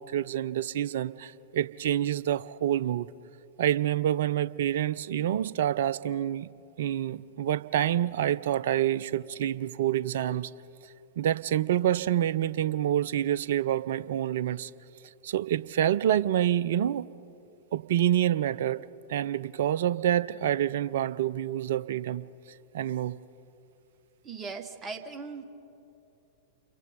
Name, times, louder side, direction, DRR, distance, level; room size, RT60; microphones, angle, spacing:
voice 1, 0.0-3.1 3.6-6.5 6.8-10.5 11.2-14.7 15.2-17.1 17.7-22.2 22.7-23.2, right 11 dB, 55° right, 18 dB, 0.5 m, -27 dB
voice 2, 24.2-25.4, right 4 dB, 20° right, 8 dB, 1.5 m, -38 dB
28.5 x 23.0 x 5.2 m, 2.8 s
figure-of-eight pair, 95°, 0 cm